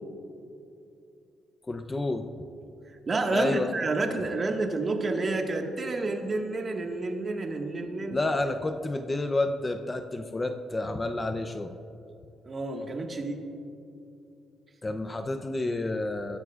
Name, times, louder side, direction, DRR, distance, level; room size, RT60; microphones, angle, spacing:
voice 1, 1.7-2.3 3.3-3.7 8.1-11.7 14.8-16.4, left 2 dB, 20° left, 7 dB, 0.6 m, -29 dB
voice 2, 3.1-8.2 12.4-13.4, right 3 dB, 35° right, 3 dB, 1.7 m, -29 dB
21.5 x 14.5 x 2.5 m, 2.7 s
cardioid pair, 90°, 0 cm